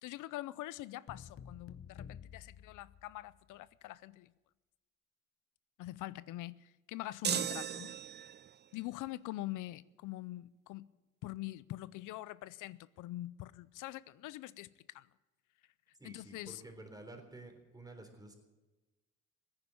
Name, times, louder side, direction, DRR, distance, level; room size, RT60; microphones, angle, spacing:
voice 1, 0.0-4.3 5.8-7.9 8.7-10.9 11.2-15.1 16.0-16.6, left 16 dB, 85° left, 0.5 m, -44 dB
sound 1, 1.1-3.6, left 8 dB, 45° left, 0.7 m, -51 dB
sound 2, 7.2-8.6, right 9 dB, 35° right, 0.5 m, -36 dB
voice 2, 16.0-18.5, right 2 dB, 10° right, 3.6 m, -51 dB
16.0 x 9.8 x 8.7 m
cardioid pair, 90°, 30 cm